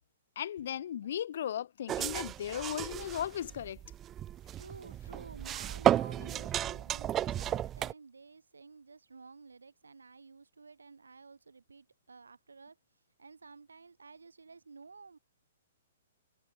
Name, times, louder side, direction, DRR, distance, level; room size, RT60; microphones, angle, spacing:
voice 1, 0.3-3.8, left 10 dB, 60° left, 1.2 m, -36 dB
sound 1, 1.9-7.9, right 11 dB, 20° right, 0.7 m, -33 dB
voice 2, 4.5-12.8 13.2-15.2, right 4 dB, 85° right, 4.4 m, -52 dB
hypercardioid pair, 125°, 0 cm